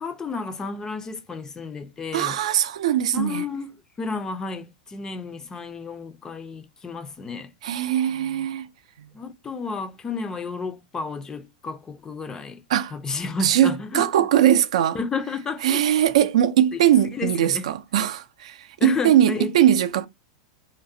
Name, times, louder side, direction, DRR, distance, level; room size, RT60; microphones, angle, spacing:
voice 1, 0.0-2.4 3.1-3.7 4.0-7.5 9.1-12.6 12.9-14.0 14.9-15.8 16.7-16.8 17.1-17.7 18.8-19.5, left 4 dB, 20° left, 0.3 m, -31 dB
voice 2, 2.1-3.4 7.6-8.7 9.0-9.1 12.7-12.9 13.4-15.0 15.6-20.1, right 11 dB, 80° right, 0.3 m, -20 dB
2.4 x 2.0 x 2.6 m
hypercardioid pair, 120°, 3 cm